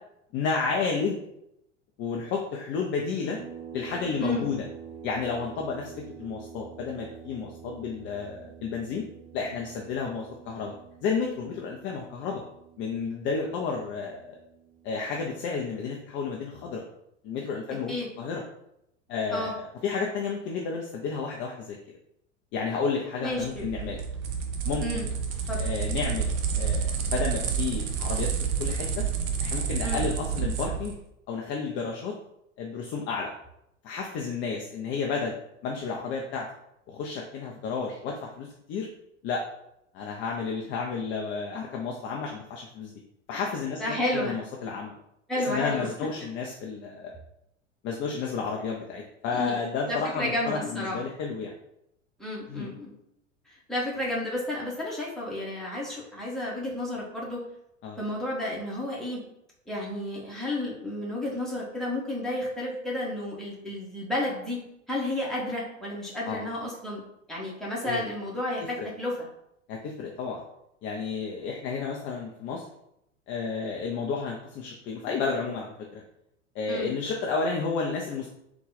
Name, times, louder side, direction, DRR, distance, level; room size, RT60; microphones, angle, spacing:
voice 1, 0.3-1.2 2.0-3.4 3.7-4.6 5.0-9.0 9.3-10.7 11.0-12.4 12.8-14.4 14.8-16.8 17.2-18.4 19.1-22.0 22.5-24.0 24.6-25.0 25.6-28.3 28.6-29.0 29.4-30.9 31.3-32.1 32.6-33.3 33.8-35.3 35.6-36.5 36.9-38.9 39.2-39.4 39.9-42.9 43.3-45.0 45.4-47.2 47.8-51.5 52.5-52.7 57.8-58.0 66.3-66.4 67.8-68.0 68.6-68.9 69.7-70.4 70.8-72.7 73.3-76.0 76.5-78.3, left 5 dB, 30° left, 0 dB, 0.5 m, -31 dB
sound 1, 3.3-16.4, right 7 dB, 65° right, 0.8 m, -47 dB
voice 2, 23.2-23.7 24.8-25.1 25.5-25.6 29.8-30.0 43.8-44.4 45.3-45.9 49.3-49.6 49.9-51.0 52.2-52.9 53.5-57.4 58.0-59.2 59.7-64.6 64.9-67.0 67.3-69.1 76.7-76.9, left 1 dB, ahead, -6 dB, 1.2 m, -31 dB
sound 2, 23.3-31.0, right 6 dB, 40° right, 0.6 m, -29 dB
3.8 x 2.3 x 3.9 m, 0.80 s
figure-of-eight pair, 80°, 38 cm